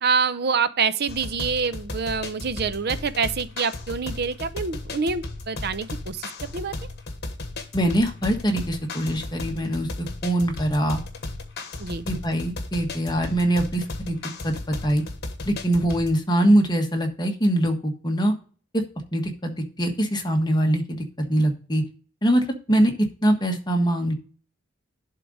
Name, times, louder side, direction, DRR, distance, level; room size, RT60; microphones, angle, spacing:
voice 1, 0.0-6.7 11.8-12.1, right 5 dB, 55° right, 14 dB, 0.6 m, -26 dB
sound 1, 1.1-16.2, left 2 dB, 55° left, 1.3 m, -35 dB
voice 2, 7.7-11.0 12.1-14.2 14.4-14.5 14.8-15.0 15.5-18.3 18.7-18.8 19.1-21.0 21.3-21.8 22.2-22.9 23.2-24.1, right 1 dB, 20° left, 3 dB, 1.4 m, -23 dB
11.0 x 3.8 x 5.0 m, 0.40 s
head